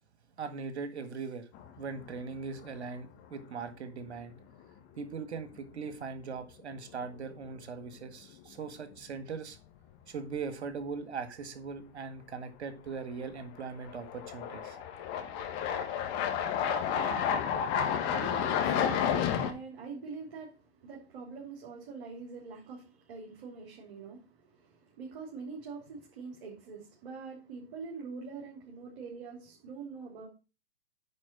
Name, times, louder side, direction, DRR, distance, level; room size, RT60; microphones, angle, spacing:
voice 1, 0.4-1.5 1.8-4.3 5.0-9.6 10.1-14.8, right 5 dB, 75° right, 1.8 m, -40 dB
sound 1, 1.5-2.2 2.6-2.7 5.5-5.6 7.0-7.2 7.5-7.6 13.0-13.1 13.8-19.5, left 8 dB, 35° left, 1.5 m, -31 dB
voice 2, 17.3-30.3, right 4 dB, 50° right, 3.1 m, -44 dB
9.6 x 4.3 x 5.9 m
hypercardioid pair, 120°, 34 cm